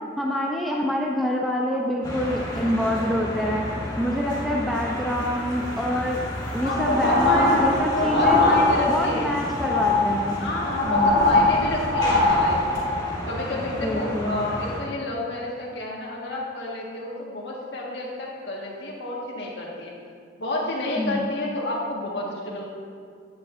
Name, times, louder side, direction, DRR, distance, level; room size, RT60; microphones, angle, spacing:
voice 1, 0.2-3.6 4.0-6.2 6.5-8.4 8.9-10.4 10.8-11.2 13.8-14.4 21.0-21.3, equal, ahead, -2 dB, 0.5 m, -26 dB
sound 1, 2.0-14.8, equal, 25° left, 2.0 m, -32 dB
sound 2, 6.5-9.2 9.5-13.0, left 2 dB, 30° right, 1.6 m, -21 dB
voice 2, 6.6-7.7 7.9-9.4 10.4-12.9 13.2-19.9 20.4-22.7, left 2 dB, 90° left, -3 dB, 1.5 m, -30 dB
9.4 x 8.6 x 2.5 m, 2.2 s
head